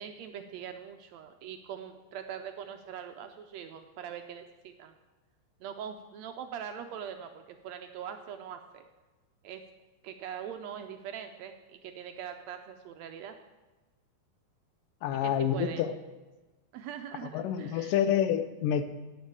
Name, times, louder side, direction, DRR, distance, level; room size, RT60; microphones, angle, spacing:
voice 1, 0.0-5.0 5.6-8.9 9.4-9.6 10.0-13.4 15.2-15.8 16.7-17.9, right 8 dB, 80° right, 6 dB, 1.6 m, -42 dB
voice 2, 15.0-15.9 17.2-18.8, left 9 dB, 90° left, 10 dB, 2.4 m, -28 dB
17.0 x 7.4 x 4.8 m, 1.2 s
omnidirectional pair, 3.7 m